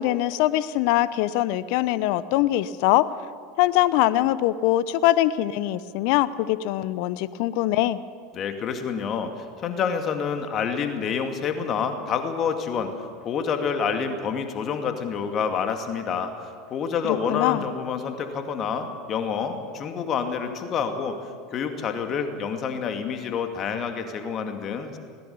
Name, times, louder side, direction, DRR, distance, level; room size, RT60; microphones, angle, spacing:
voice 1, 0.0-3.1 3.6-8.0 17.0-17.6, left 15 dB, 55° left, 17 dB, 0.8 m, -22 dB
voice 2, 8.3-12.9 13.2-16.3 16.7-21.2 21.5-25.0, left 6 dB, 40° left, 6 dB, 2.3 m, -28 dB
20.0 x 18.5 x 7.1 m, 2.1 s
figure-of-eight pair, 75°, 0 cm